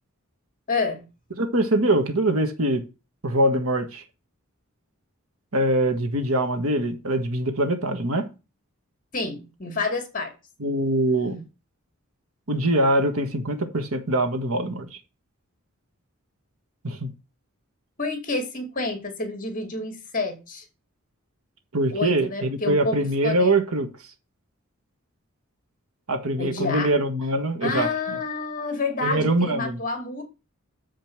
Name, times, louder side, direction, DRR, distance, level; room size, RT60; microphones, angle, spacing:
voice 1, 0.7-1.0 9.1-10.3 18.0-20.7 21.9-23.0 23.2-23.6 26.4-26.9 27.6-30.2, left 3 dB, 40° left, 2.5 m, -28 dB
voice 2, 1.4-2.8 3.2-4.0 5.5-8.2 10.6-11.4 12.5-15.0 16.8-17.1 21.7-23.9 26.1-27.9 29.0-29.8, right 1 dB, 80° right, 1.6 m, -23 dB
7.3 x 5.3 x 6.1 m
head